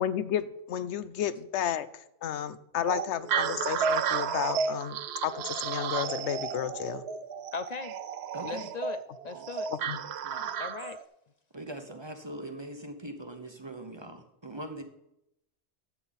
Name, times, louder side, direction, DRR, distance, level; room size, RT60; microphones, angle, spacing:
voice 1, 0.0-7.0 9.9-10.0, left 9 dB, 80° left, 15 dB, 0.9 m, -32 dB
sound 1, 2.9-11.0, right 7 dB, 70° right, 0.8 m, -32 dB
voice 2, 7.5-8.0 8.4-9.7 10.6-11.0, left 5 dB, 60° left, 12 dB, 0.4 m, -38 dB
voice 3, 8.3-8.7 9.3-9.5 9.8-9.9 10.2-10.5 11.5-14.8, right 1 dB, 25° right, 6 dB, 1.0 m, -41 dB
11.0 x 7.8 x 4.1 m, 0.82 s
omnidirectional pair, 1.2 m